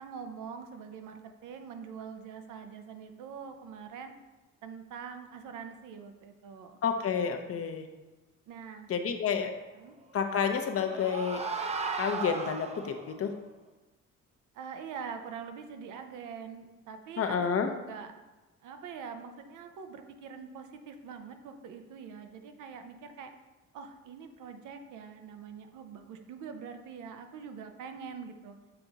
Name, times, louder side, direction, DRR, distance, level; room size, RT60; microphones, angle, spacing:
voice 1, 0.0-4.1 4.6-6.8 8.5-8.9 9.7-9.9 14.5-18.1 18.6-23.3 23.7-28.6, right 6 dB, 85° right, 6 dB, 0.7 m, -44 dB
voice 2, 6.8-7.9 8.9-9.5 10.1-11.4 12.0-13.3 17.2-17.7, left 6 dB, 50° left, 6 dB, 0.7 m, -30 dB
sound 1, 10.3-13.2, right 4 dB, 20° right, 0.5 m, -36 dB
6.9 x 3.5 x 3.9 m, 1.1 s
cardioid pair, 90°, 30 cm